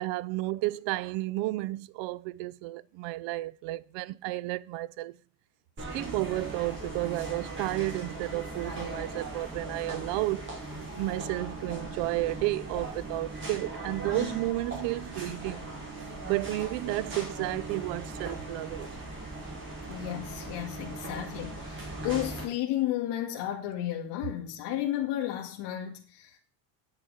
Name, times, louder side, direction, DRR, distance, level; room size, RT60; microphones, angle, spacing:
voice 1, 0.0-5.2 5.9-10.5 11.0-15.6 16.3-19.0, right 18 dB, 65° right, 0.7 m, -32 dB
sound 1, 5.8-22.4, right 2 dB, 25° right, 5.5 m, -39 dB
voice 2, 19.9-26.4, left 12 dB, 55° left, 2.3 m, -33 dB
9.0 x 6.8 x 8.7 m
cardioid pair, 150°, 49 cm